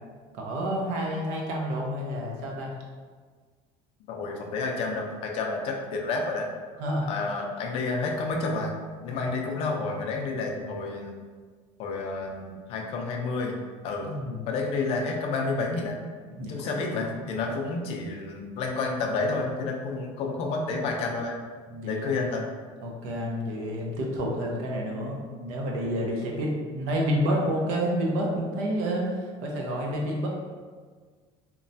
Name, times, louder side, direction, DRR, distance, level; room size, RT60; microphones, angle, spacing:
voice 1, 0.3-2.7 6.8-7.1 9.1-9.3 14.0-14.5 16.2-16.5 17.1-17.2 21.7-22.1 22.8-30.3, equal, 70° right, -1 dB, 0.6 m, -29 dB
voice 2, 4.1-6.5 7.1-8.7 9.0-11.1 11.8-13.6 13.8-14.1 14.5-16.0 16.5-21.4 21.8-22.4, left 3 dB, 50° left, 1 dB, 0.4 m, -30 dB
3.0 x 2.1 x 2.6 m, 1.5 s
cardioid pair, 160°, 13 cm